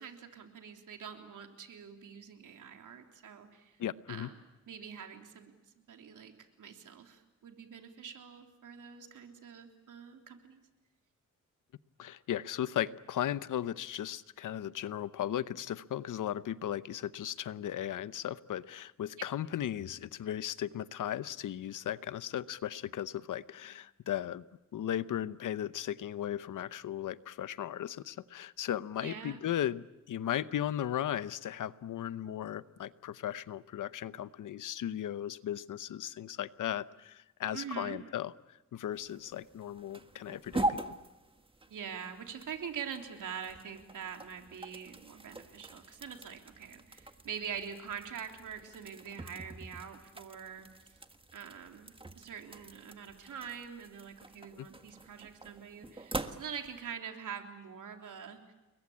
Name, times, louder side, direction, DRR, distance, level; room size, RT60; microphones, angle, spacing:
voice 1, 0.0-3.8 4.1-4.4 4.7-10.6 29.0-29.4 37.5-38.0 41.7-51.0 51.3-58.5, right 7 dB, 80° right, 4 dB, 3.4 m, -44 dB
voice 2, 3.8-4.3 12.0-24.4 24.7-40.8 54.6-54.7, left 11 dB, 80° left, 15 dB, 0.9 m, -36 dB
sound 1, 38.9-56.9, right 2 dB, 15° right, 1.5 m, -43 dB
30.0 x 22.0 x 8.7 m, 1.0 s
cardioid pair, 90°, 31 cm